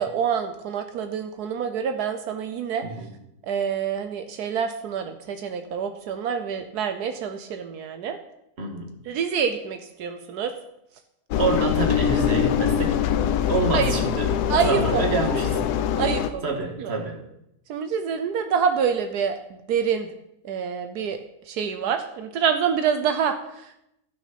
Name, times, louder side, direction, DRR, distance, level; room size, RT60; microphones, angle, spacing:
voice 1, 0.0-2.8 3.4-8.2 9.1-10.5 13.7-13.9 14.5-15.0 16.0-16.9 17.7-19.4 19.7-20.1 20.4-21.2 21.5-23.8, right 7 dB, 85° right, 7 dB, 1.3 m, -26 dB
voice 2, 2.8-3.1 8.6-8.9 11.4-13.1 13.5-15.6 16.4-17.2, right 3 dB, 40° right, 2 dB, 1.9 m, -27 dB
Engine, 11.3-16.3, left 9 dB, 80° left, 1.1 m, -23 dB
14.0 x 6.2 x 5.8 m, 0.82 s
omnidirectional pair, 1.6 m